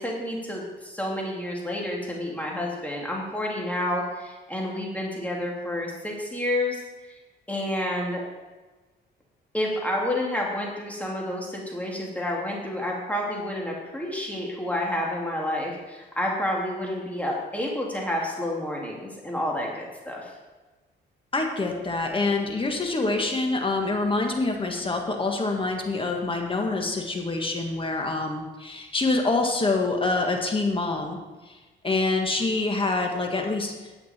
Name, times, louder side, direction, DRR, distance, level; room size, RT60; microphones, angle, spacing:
voice 1, 0.0-6.8 7.0-7.2 7.5-8.2 9.5-20.3, left 1 dB, 5° left, -2 dB, 2.5 m, -29 dB
voice 2, 21.3-31.2 31.5-31.6 31.8-33.7, left 3 dB, 25° left, 2 dB, 1.7 m, -26 dB
11.0 x 8.1 x 4.4 m, 1.2 s
cardioid pair, 90°, 20 cm